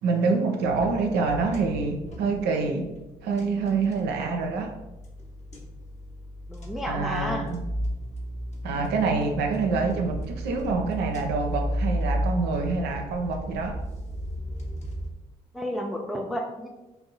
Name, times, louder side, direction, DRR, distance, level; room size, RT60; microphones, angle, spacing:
voice 1, 0.0-2.9 3.2-4.7 6.9-7.6 8.6-13.8, right 4 dB, 60° right, 3 dB, 0.4 m, -26 dB
sound 1, 0.6-15.1, equal, 35° left, 0.8 m, -34 dB
voice 2, 6.5-7.4 15.5-16.7, equal, ahead, 0 dB, 0.4 m, -31 dB
2.6 x 2.0 x 3.8 m, 1.0 s
figure-of-eight pair, 45°, 19 cm